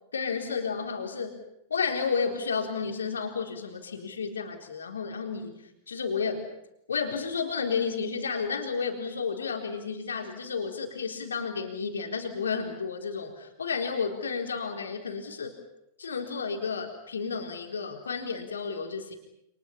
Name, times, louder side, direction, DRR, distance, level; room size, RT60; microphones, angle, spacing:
voice 1, 0.1-1.4 1.7-5.6 5.9-6.5 6.9-15.6 16.0-19.1, left 5 dB, 70° left, 3 dB, 3.9 m, -32 dB
29.5 x 28.5 x 5.8 m, 0.80 s
figure-of-eight pair, 90°, 0 cm